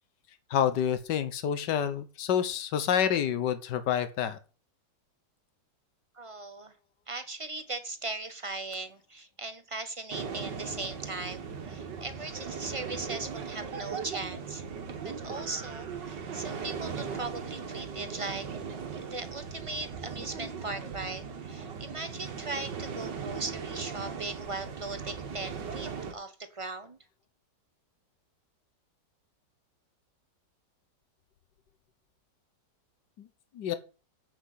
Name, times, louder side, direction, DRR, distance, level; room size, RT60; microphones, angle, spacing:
voice 1, 0.5-4.4 33.2-33.3 33.5-33.7, left 9 dB, 75° left, 11 dB, 1.7 m, -28 dB
voice 2, 6.1-6.7 7.1-14.7 15.0-18.5 19.0-27.0, right 2 dB, 25° right, 9 dB, 0.8 m, -39 dB
sound 1, 10.1-26.1, right 6 dB, 75° right, 2.1 m, -38 dB
8.6 x 6.1 x 8.3 m, 0.35 s
omnidirectional pair, 1.9 m